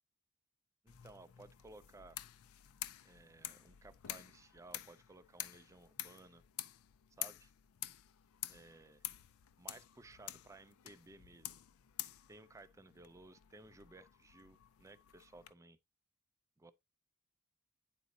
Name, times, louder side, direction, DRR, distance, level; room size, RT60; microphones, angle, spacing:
voice 1, 0.8-2.2 3.0-6.4 7.2-7.5 8.5-9.0 9.6-11.6 12.3-15.8 16.6-16.7, right 2 dB, 15° right, 0.3 m, -58 dB
sound 1, 0.9-15.5, left 14 dB, 70° left, 0.4 m, -49 dB
9.3 x 4.0 x 2.7 m
head